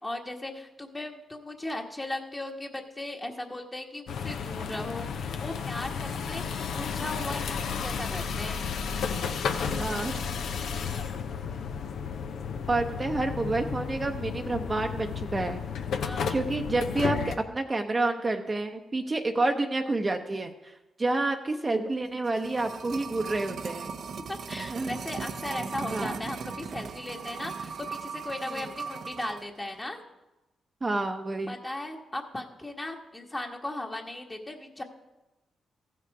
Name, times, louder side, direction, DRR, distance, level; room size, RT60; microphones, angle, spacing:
voice 1, 0.0-8.6 16.0-16.3 24.3-30.0 31.5-34.8, left 1 dB, 20° left, 1 dB, 1.3 m, -37 dB
sound 1, 4.1-17.4, left 6 dB, 75° left, 0.7 m, -33 dB
voice 2, 9.7-10.2 12.7-15.6 16.3-24.0 24.7-24.9 25.9-26.2 28.5-28.6 30.8-31.6, right 2 dB, 30° right, 4 dB, 0.7 m, -29 dB
sound 2, 22.0-29.4 29.7-29.8, right 5 dB, 65° right, 0.6 m, -38 dB
14.5 x 5.9 x 4.7 m, 1.0 s
supercardioid pair, 60°, 0 cm